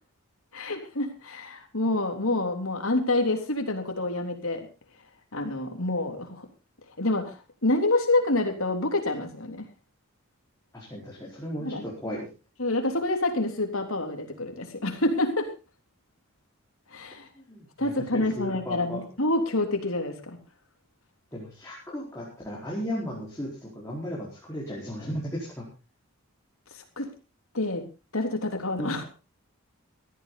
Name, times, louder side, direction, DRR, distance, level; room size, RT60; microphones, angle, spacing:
voice 1, 0.5-4.7 5.3-6.4 7.0-7.3 7.6-9.7 11.6-11.8 12.6-15.5 16.9-17.3 17.8-20.4 27.0-27.1 27.5-27.8 28.1-29.0, left 2 dB, 70° left, 4 dB, 3.4 m, -27 dB
voice 2, 10.7-12.3 17.3-19.0 21.3-25.6 28.8-29.0, equal, 15° left, -5 dB, 4.6 m, -35 dB
17.0 x 13.5 x 4.0 m, 0.31 s
head